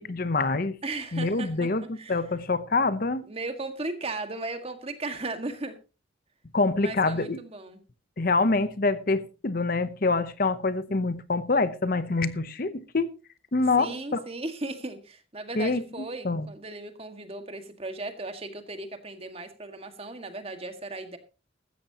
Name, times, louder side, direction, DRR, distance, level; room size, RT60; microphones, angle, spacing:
voice 1, 0.0-0.8 1.1-3.3 6.5-7.4 8.2-13.1 13.5-14.2 15.5-16.5, left 3 dB, 45° left, 0.8 m, -26 dB
voice 2, 0.8-2.2 3.3-5.7 6.8-7.8 13.8-21.2, right 2 dB, 30° right, 1.8 m, -36 dB
15.5 x 13.5 x 2.9 m
head